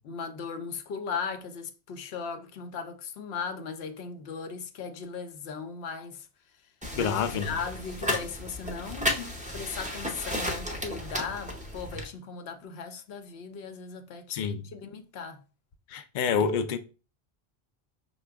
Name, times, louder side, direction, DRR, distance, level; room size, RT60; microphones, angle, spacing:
voice 1, 0.1-6.3 6.9-15.4, left 5 dB, 85° left, 0.9 m, -37 dB
sound 1, 6.8-12.0, left 1 dB, 10° right, 0.5 m, -33 dB
voice 2, 7.0-7.6 14.3-14.7 15.9-16.8, left 6 dB, 60° left, 0.6 m, -28 dB
5.6 x 2.3 x 3.4 m
omnidirectional pair, 1.0 m